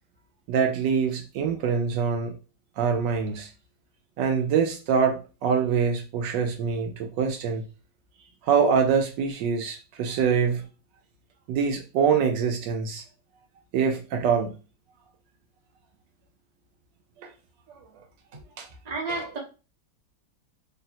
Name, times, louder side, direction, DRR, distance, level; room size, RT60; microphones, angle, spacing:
voice 1, 0.5-2.4 2.8-3.5 4.2-7.6 8.4-10.6 11.5-13.0 13.7-14.5 17.2-17.3 17.7-17.8 18.6-18.7, right 6 dB, 75° right, 4 dB, 1.2 m, -24 dB
voice 2, 18.8-19.4, right 3 dB, 30° right, -3 dB, 0.8 m, -32 dB
3.8 x 2.0 x 2.7 m, 0.32 s
omnidirectional pair, 2.0 m